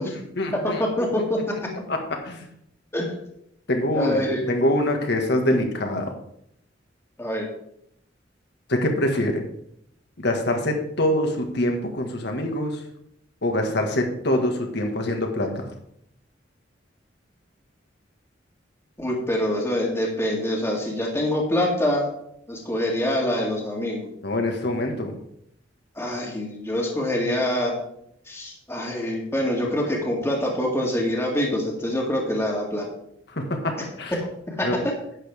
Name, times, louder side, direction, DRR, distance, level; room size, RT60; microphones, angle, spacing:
voice 1, 0.0-0.8 1.9-2.4 3.7-6.1 8.7-9.4 10.2-12.8 13.4-15.7 24.2-25.2 33.3-34.1 34.6-34.8, left 1 dB, 65° left, 3 dB, 1.9 m, -25 dB
voice 2, 0.5-1.4 2.9-3.1 3.9-4.4 7.2-7.5 19.0-22.1 22.5-24.1 26.0-27.8 28.3-32.8 34.5-34.7, left 1 dB, 15° left, -2 dB, 2.0 m, -25 dB
11.0 x 8.9 x 3.6 m, 0.73 s
head